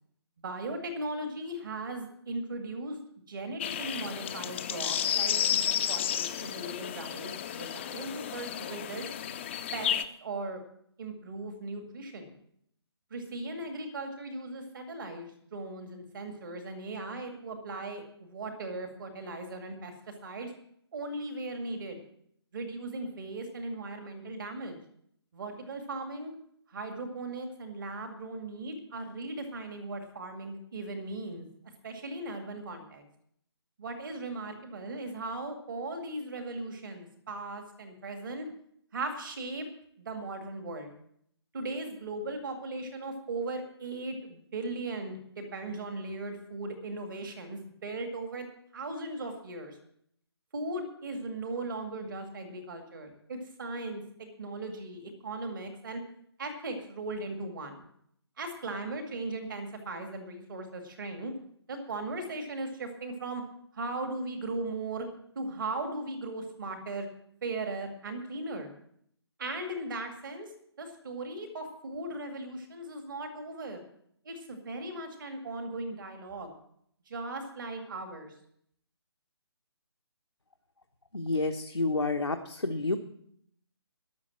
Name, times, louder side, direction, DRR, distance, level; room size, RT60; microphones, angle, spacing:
voice 1, 0.4-3.0 3.3-7.3 7.6-9.1 9.7-9.9 10.2-10.6 11.0-12.3 13.1-19.9 20.2-20.5 20.9-22.0 22.5-24.8 25.3-26.3 26.7-31.5 31.8-33.0 33.8-38.5 38.9-39.7 40.0-40.9 41.5-48.5 48.7-49.8 50.5-56.0 56.4-57.8 58.4-61.3 61.7-63.4 63.7-65.1 65.4-67.1 67.4-68.7 69.4-70.5 70.8-73.8 74.3-76.5 77.1-78.3, right 2 dB, 45° right, 5 dB, 2.2 m, -38 dB
sound 1, 3.6-10.0, left 9 dB, 25° left, 0.6 m, -32 dB
voice 2, 81.1-83.0, left 3 dB, 85° left, 3 dB, 1.1 m, -29 dB
12.0 x 7.0 x 8.7 m, 0.69 s
figure-of-eight pair, 145°, 14 cm